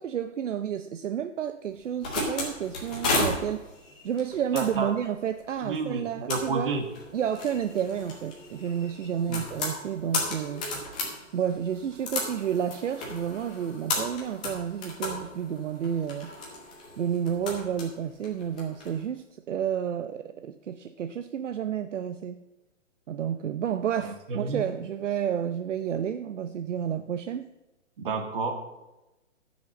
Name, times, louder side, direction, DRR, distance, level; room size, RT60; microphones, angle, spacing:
voice 1, 0.0-3.7 4.0-6.8 7.1-10.7 11.3-16.3 17.0-22.4 23.1-27.5, right 9 dB, 70° right, 10 dB, 0.7 m, -30 dB
sound 1, 1.7-18.9, left 2 dB, 5° left, 0.5 m, -34 dB
voice 2, 4.5-4.9 5.6-6.8 9.3-9.4 24.0-24.6 28.0-28.6, right 4 dB, 45° right, 5 dB, 1.8 m, -30 dB
11.5 x 6.2 x 7.3 m, 1.0 s
hypercardioid pair, 165°, 38 cm